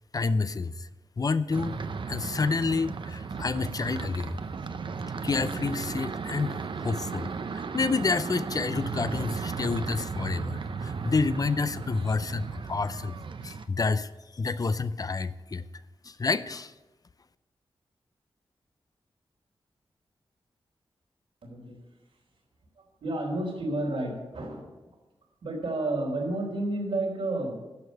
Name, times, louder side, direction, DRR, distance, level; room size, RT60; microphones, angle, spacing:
voice 1, 0.1-0.9 1.2-1.8 2.1-4.4 5.2-13.2 13.4-15.7 16.0-16.7, left 4 dB, 40° left, 14 dB, 0.5 m, -29 dB
sound 1, 1.5-13.6, right 5 dB, 55° right, 0.6 m, -35 dB
voice 2, 21.4-21.7 23.0-24.7 25.4-27.7, right 2 dB, 90° right, -3 dB, 3.6 m, -31 dB
11.0 x 6.7 x 6.5 m, 1.1 s
wide cardioid pair, 80°, 10 cm